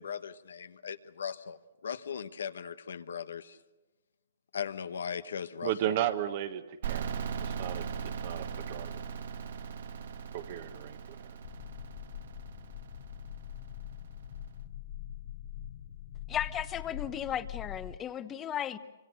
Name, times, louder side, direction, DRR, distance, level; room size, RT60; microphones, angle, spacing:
voice 1, 0.0-3.6 4.5-5.9, left 7 dB, 80° left, 12 dB, 1.1 m, -38 dB
voice 2, 5.6-7.1 7.4-8.9 10.3-11.4, right 11 dB, 45° right, 10 dB, 1.4 m, -35 dB
sound 1, 6.8-14.4, right 6 dB, 65° right, 1.4 m, -39 dB
sound 2, 11.4-18.0, left 11 dB, 45° left, 0.8 m, -43 dB
voice 3, 16.3-18.8, left 10 dB, 20° left, 13 dB, 0.9 m, -35 dB
25.5 x 24.5 x 6.6 m, 1.2 s
hypercardioid pair, 150°, 0 cm